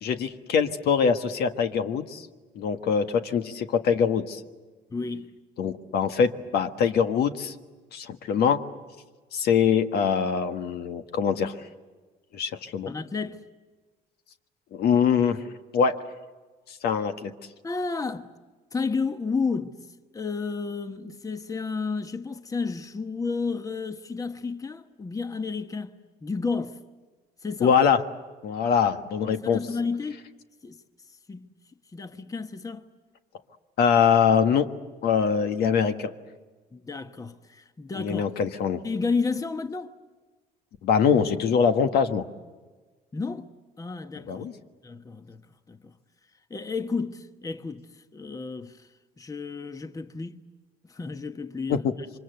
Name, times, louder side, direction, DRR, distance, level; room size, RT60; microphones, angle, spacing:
voice 1, 0.0-2.2 2.5-4.4 5.6-7.5 7.9-8.6 9.3-11.6 12.3-12.9 14.7-15.4 15.7-16.0 16.8-17.3 27.6-28.0 28.4-29.6 33.8-34.7 35.0-36.1 37.9-38.8 40.8-42.2 44.3-44.5 51.7-51.8, left 7 dB, 70° left, 1.6 m, -23 dB
voice 2, 4.9-5.3 12.9-13.4 17.6-18.3 18.7-19.8 20.1-25.9 26.2-26.8 27.4-27.8 29.2-30.2 30.6-30.8 31.3-31.5 31.9-32.9 36.7-38.2 38.8-39.9 43.1-43.5 43.8-44.5 44.8-45.4 45.7-45.9 46.5-47.8 48.1-48.9 49.2-50.5 50.9-52.1, left 4 dB, 20° left, 1.2 m, -31 dB
28.0 x 24.5 x 8.0 m
cardioid pair, 110°, 17 cm